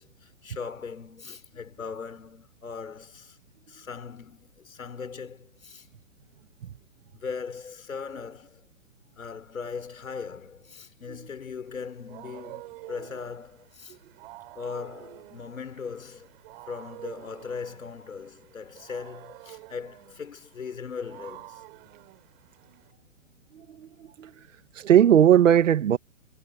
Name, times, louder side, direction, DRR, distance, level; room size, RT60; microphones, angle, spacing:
voice 1, 0.0-3.4 3.7-5.9 7.1-8.6 9.2-14.0 14.5-16.3 16.7-21.6, left 5 dB, 85° left, 5.1 m, -39 dB
Wild animals, 11.7-22.9, right 19 dB, 45° right, 7.6 m, -48 dB
voice 2, 23.5-24.5 24.7-26.0, right 10 dB, 70° right, 1.9 m, -19 dB
hypercardioid pair, 130°, 40 cm